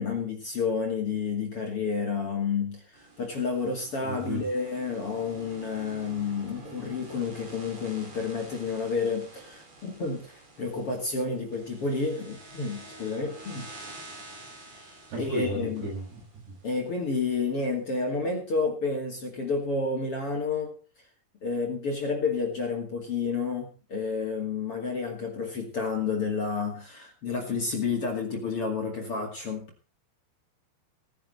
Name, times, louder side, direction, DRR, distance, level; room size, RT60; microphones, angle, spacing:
voice 1, 0.0-13.7 14.8-14.9 15.2-15.8 16.6-20.8 21.4-29.7, left 4 dB, 40° left, 1 dB, 2.7 m, -30 dB
sound 1, 2.9-17.1, right 3 dB, 40° right, 5.1 m, -48 dB
voice 2, 4.0-4.4 15.1-16.4, right 1 dB, 85° right, -2 dB, 9.8 m, -34 dB
18.0 x 10.5 x 4.1 m, 0.35 s
omnidirectional pair, 4.7 m